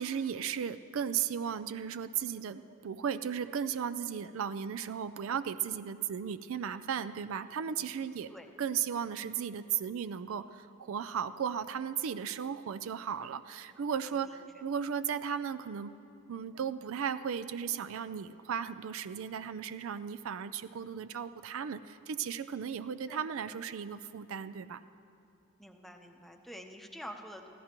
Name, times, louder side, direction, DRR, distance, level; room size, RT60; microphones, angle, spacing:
voice 1, 0.0-8.3 8.6-16.0 16.3-24.8, right 7 dB, 65° right, 12 dB, 0.4 m, -35 dB
voice 2, 25.6-27.5, equal, ahead, 3 dB, 0.7 m, -47 dB
25.5 x 15.5 x 3.0 m, 2.6 s
head